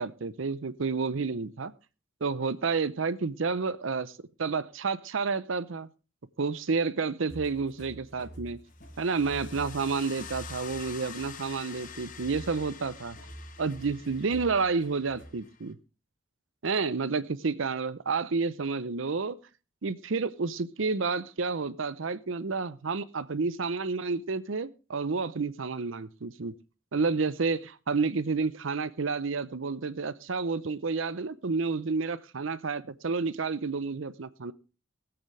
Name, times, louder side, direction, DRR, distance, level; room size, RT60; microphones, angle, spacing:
voice 1, 0.0-1.7 2.2-4.1 4.4-5.9 6.4-8.6 9.0-13.2 13.6-15.8 16.6-19.4 19.8-26.5 26.9-34.5, right 4 dB, 75° right, 0.7 m, -30 dB
sound 1, 7.3-15.5, right 1 dB, 60° left, 4.1 m, -47 dB
sound 2, 8.8-15.7, left 7 dB, 40° left, 0.8 m, -47 dB
20.5 x 7.9 x 3.3 m
head